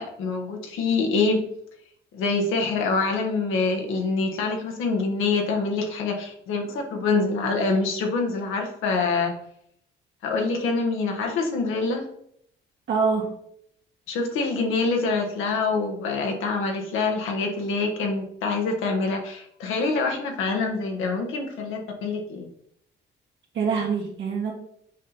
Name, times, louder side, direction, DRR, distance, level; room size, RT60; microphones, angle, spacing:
voice 1, 0.0-1.4 2.1-9.3 10.2-12.1 14.1-22.5, left 3 dB, 90° left, 2 dB, 1.4 m, -25 dB
voice 2, 12.9-13.3 23.5-24.5, right 5 dB, 70° right, -2 dB, 1.8 m, -24 dB
7.3 x 4.4 x 4.0 m, 0.70 s
cardioid pair, 90°, 20 cm